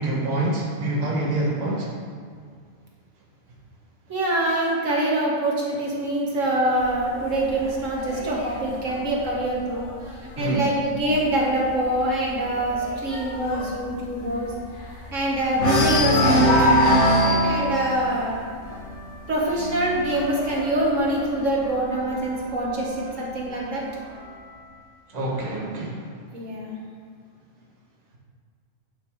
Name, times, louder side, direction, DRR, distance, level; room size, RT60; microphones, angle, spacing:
voice 1, 0.0-1.9 10.4-10.7 25.1-26.1, right 1 dB, 30° right, -2 dB, 1.3 m, -26 dB
voice 2, 4.1-9.9 10.4-14.5 15.1-18.4 19.3-23.8 26.3-26.8, right 1 dB, 70° right, -3 dB, 2.1 m, -25 dB
sound 1, 6.8-10.4 10.8-11.2 11.4-11.5 11.9-15.2 15.5-22.1 23.0-24.0, equal, 60° left, 1.7 m, -24 dB
10.5 x 5.8 x 5.0 m, 2.1 s
omnidirectional pair, 1.4 m